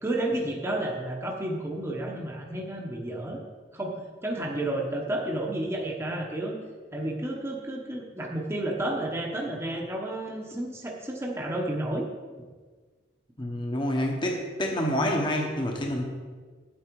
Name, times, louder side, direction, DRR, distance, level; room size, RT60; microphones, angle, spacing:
voice 1, 0.0-3.4 3.7-6.6 6.9-12.1, right 1 dB, 15° right, -1 dB, 0.9 m, -31 dB
voice 2, 13.4-16.0, left 1 dB, 25° left, 1 dB, 1.0 m, -27 dB
9.4 x 8.7 x 4.6 m, 1.5 s
head